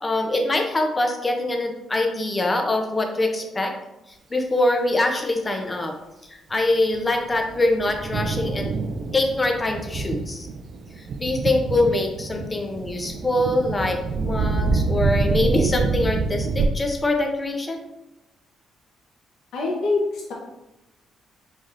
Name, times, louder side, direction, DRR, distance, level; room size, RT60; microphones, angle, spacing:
voice 1, 0.0-3.7 4.3-5.9 6.3-8.7 9.1-10.5 11.0-17.8, left 2 dB, 25° left, 3 dB, 0.6 m, -24 dB
Thunder, 6.9-16.7, right 4 dB, 60° right, 0.4 m, -26 dB
voice 2, 19.5-20.3, left 3 dB, 75° left, -3 dB, 0.9 m, -24 dB
4.0 x 3.1 x 2.5 m, 0.97 s
cardioid pair, 90°, 0 cm